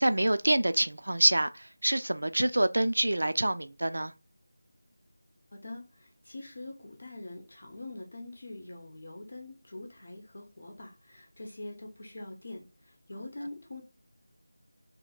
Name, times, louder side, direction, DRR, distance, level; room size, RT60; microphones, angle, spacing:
voice 1, 0.0-4.1, right 1 dB, 60° right, 0.3 m, -26 dB
voice 2, 5.5-12.6 13.1-13.8, left 2 dB, 45° left, 0.7 m, -44 dB
2.8 x 2.7 x 2.3 m
figure-of-eight pair, 165°, 0 cm